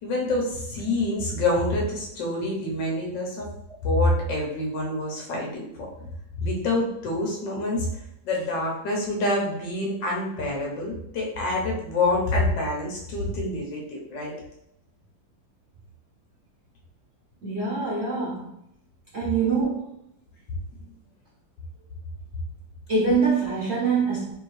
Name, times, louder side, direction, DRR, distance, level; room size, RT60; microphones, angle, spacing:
voice 1, 0.0-3.5 3.8-5.9 6.4-7.9 8.2-14.3, left 2 dB, 70° left, -2 dB, 1.6 m, -26 dB
voice 2, 17.4-18.5 19.1-19.9 22.9-24.3, right 4 dB, 50° right, -6 dB, 0.8 m, -24 dB
3.6 x 3.6 x 3.2 m, 0.78 s
omnidirectional pair, 2.0 m